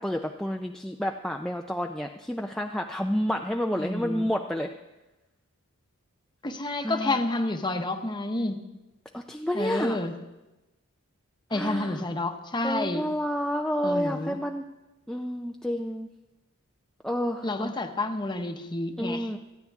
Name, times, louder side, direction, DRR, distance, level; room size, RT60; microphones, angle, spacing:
voice 1, 0.0-4.7 6.8-7.2 9.1-10.0 11.5-12.0 12.6-14.7 15.1-16.1 17.0-17.7 19.0-19.4, equal, ahead, 2 dB, 0.4 m, -30 dB
voice 2, 3.8-4.3 6.4-8.6 9.5-10.1 11.5-13.1 13.8-14.4 17.4-19.3, left 2 dB, 20° left, 6 dB, 0.9 m, -29 dB
28.0 x 9.5 x 3.6 m, 1.0 s
head